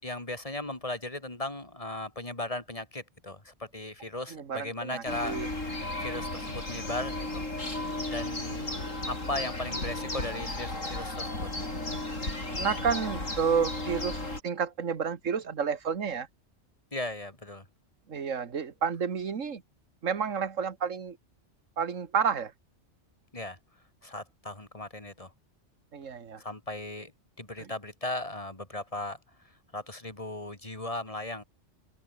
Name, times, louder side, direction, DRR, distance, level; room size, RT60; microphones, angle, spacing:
voice 1, 0.0-5.4 6.0-7.4 7.8-8.7 9.1-11.5 16.9-17.7 23.3-23.6 24.0-25.3 26.4-27.1 27.4-31.4, left 2 dB, 25° left, 3.6 m, -37 dB
voice 2, 4.3-5.5 8.7-8.9 12.5-16.3 18.1-19.6 20.0-21.2 21.8-22.5 25.9-26.4 27.6-27.7, right 6 dB, 80° right, 1.9 m, -30 dB
sound 1, 5.1-14.4, left 2 dB, 80° left, 6.7 m, -34 dB
omnidirectional pair, 1.3 m